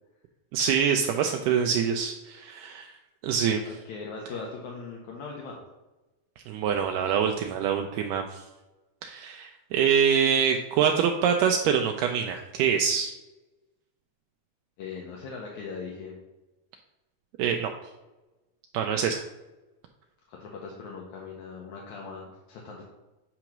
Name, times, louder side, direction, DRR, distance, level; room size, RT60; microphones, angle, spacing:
voice 1, 0.5-2.9 3.2-3.6 6.5-8.4 9.0-13.1 17.4-17.7 18.7-19.2, right 7 dB, 85° right, 4 dB, 1.8 m, -25 dB
voice 2, 3.7-5.6 14.8-16.2 20.3-22.8, left 4 dB, 70° left, -2 dB, 1.9 m, -40 dB
8.7 x 3.0 x 5.9 m, 1.1 s
omnidirectional pair, 4.2 m